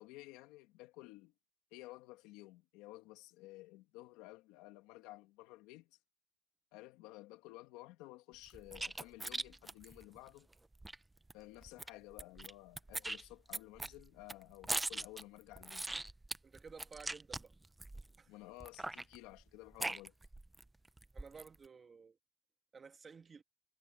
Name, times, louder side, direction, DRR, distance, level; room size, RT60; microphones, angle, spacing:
voice 1, 0.0-1.3 1.7-6.0 6.7-10.5 11.3-15.9 18.3-20.1, left 19 dB, 85° left, 2.4 m, -54 dB
sound 1, 8.5-11.0 11.3-11.4 11.6-12.5 12.8-18.2 18.6-20.6 21.0-21.6, right 2 dB, 10° right, 0.6 m, -41 dB
voice 2, 16.4-17.5 18.2-18.3 21.1-22.2 22.7-23.4, right 5 dB, 25° right, 1.7 m, -54 dB
cardioid pair, 130°, 0 cm